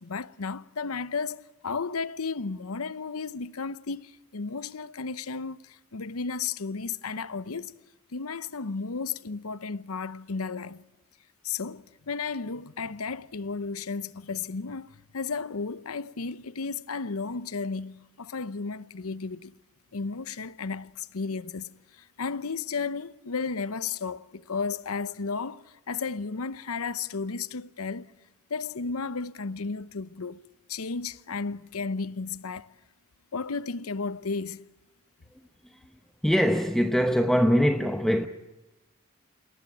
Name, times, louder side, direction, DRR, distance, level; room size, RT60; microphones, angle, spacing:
voice 1, 0.0-7.7 8.1-10.8 11.4-19.6 19.9-28.1 28.5-30.4 30.7-32.7 33.3-34.7, left 4 dB, 85° left, 0.8 m, -33 dB
voice 2, 36.2-38.3, equal, ahead, 0.9 m, -23 dB
28.5 x 19.0 x 10.0 m
head